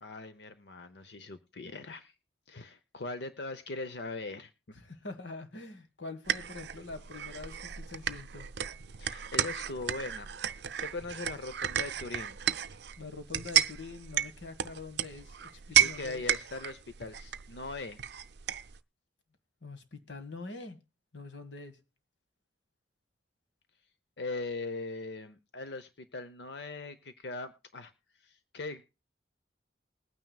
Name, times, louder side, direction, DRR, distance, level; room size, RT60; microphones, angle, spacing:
voice 1, 0.0-2.1 2.5-4.5 9.0-12.4 15.7-18.0 24.2-27.9 28.2-28.9, left 3 dB, 65° left, 0.8 m, -40 dB
voice 2, 4.8-8.5 13.0-16.2 19.6-20.8 21.1-21.8, left 3 dB, 85° left, 1.7 m, -44 dB
sound 1, 6.3-18.8, right 9 dB, 60° right, 0.5 m, -33 dB
21.0 x 9.4 x 2.4 m
head